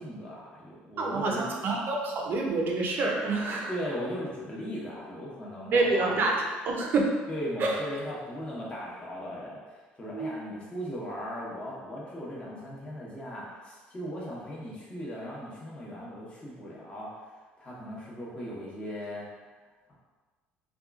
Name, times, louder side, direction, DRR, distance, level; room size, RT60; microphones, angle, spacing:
voice 1, 0.0-1.5 3.7-6.2 7.3-17.3 17.6-19.3, equal, 25° left, -5 dB, 0.9 m, -38 dB
voice 2, 1.0-3.7 5.7-7.1 7.6-7.8 10.1-10.4, right 3 dB, 50° right, 0 dB, 0.5 m, -27 dB
2.8 x 2.3 x 2.3 m, 1.4 s
supercardioid pair, 95°, 4 cm